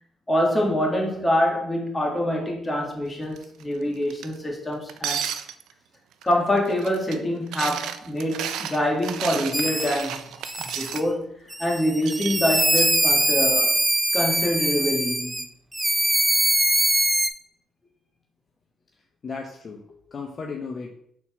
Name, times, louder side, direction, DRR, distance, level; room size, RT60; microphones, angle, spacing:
voice 1, 0.3-5.2 6.2-10.3 10.6-11.3 11.6-13.8 14.1-15.5, equal, 15° left, 1.8 m, -25 dB
sound 1, 3.4-3.6 4.1-4.3 4.9-5.7 6.2-6.3 6.6-7.2 7.5-11.0 12.0-13.0, right 9 dB, 85° right, 0.4 m, -32 dB
sound 2, 9.5-10.0 10.4-11.0 11.5-15.5 15.7-17.3, right 1 dB, 10° right, 0.5 m, -22 dB
voice 2, 19.2-21.0, left 4 dB, 45° left, 0.7 m, -35 dB
4.3 x 4.1 x 5.6 m
cardioid pair, 90°, 0 cm